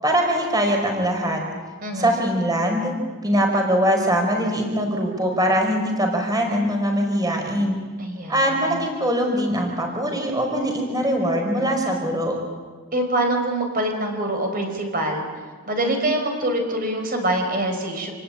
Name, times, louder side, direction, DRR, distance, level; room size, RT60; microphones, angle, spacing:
voice 1, 0.0-1.4 1.9-2.9 3.2-7.8 8.3-12.4, equal, 15° right, 2 dB, 4.9 m, -22 dB
voice 2, 1.8-2.3 8.0-8.8 12.9-15.3 15.7-18.1, right 1 dB, 40° right, 4 dB, 4.9 m, -25 dB
28.5 x 19.0 x 8.9 m, 1.4 s
head